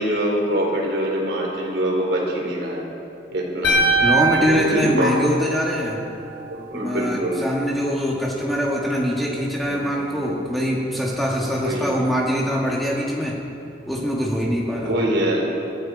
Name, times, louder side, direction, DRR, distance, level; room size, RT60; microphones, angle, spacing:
voice 1, 0.0-2.8 3.3-3.8 4.5-5.1 6.5-7.4 9.6-9.8 11.4-11.9 14.7-15.5, right 1 dB, 75° right, -1 dB, 3.7 m, -24 dB
sound 1, 3.6-5.9, right 2 dB, 85° left, 4.4 m, -21 dB
voice 2, 4.0-6.0 6.7-13.4 13.9-14.9, equal, ahead, -3 dB, 2.3 m, -23 dB
21.5 x 14.5 x 4.4 m, 2.8 s
head